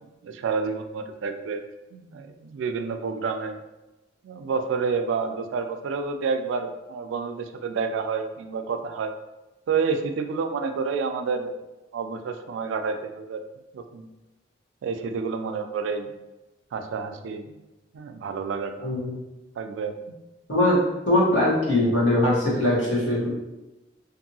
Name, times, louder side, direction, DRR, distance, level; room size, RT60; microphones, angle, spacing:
voice 1, 0.2-1.6 1.9-3.6 4.2-9.1 9.7-11.5 11.9-13.4 13.7-14.1 14.8-16.1 16.7-17.6 17.9-18.9 19.6-20.1, right 5 dB, 80° right, 6 dB, 0.3 m, -29 dB
voice 2, 18.8-19.1 20.5-20.8 21.1-23.3, left 1 dB, 80° left, -6 dB, 1.1 m, -21 dB
2.6 x 2.6 x 2.7 m, 1.0 s
head